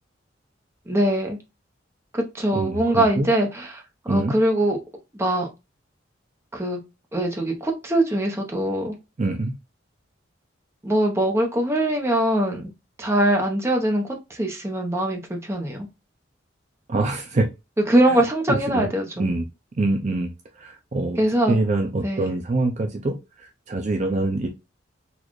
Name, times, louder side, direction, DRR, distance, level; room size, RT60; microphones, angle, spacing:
voice 1, 0.9-1.4 2.1-4.8 5.1-5.5 6.5-6.8 7.1-9.0 10.8-12.7 13.0-15.9 17.8-19.3 21.2-21.6 22.0-22.3, right 1 dB, 15° right, 0.8 m, -22 dB
voice 2, 2.5-3.3 4.1-4.3 9.2-9.5 16.9-17.5 18.1-18.2 18.5-18.9 19.2-19.4 19.8-21.2 21.5-24.5, right 2 dB, 40° right, 0.5 m, -25 dB
4.1 x 2.4 x 3.1 m
head